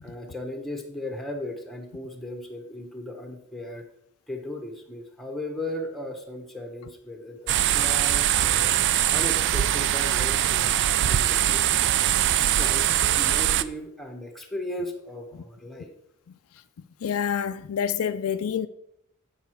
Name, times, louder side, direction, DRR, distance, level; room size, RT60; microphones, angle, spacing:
voice 1, 0.0-3.8 4.3-10.7 11.1-11.8 12.3-15.9, left 1 dB, ahead, 1.1 m, -37 dB
sound 1, 7.5-13.6, right 12 dB, 55° right, 0.3 m, -22 dB
voice 2, 17.0-18.7, left 8 dB, 65° left, 0.4 m, -27 dB
8.1 x 5.5 x 4.5 m
head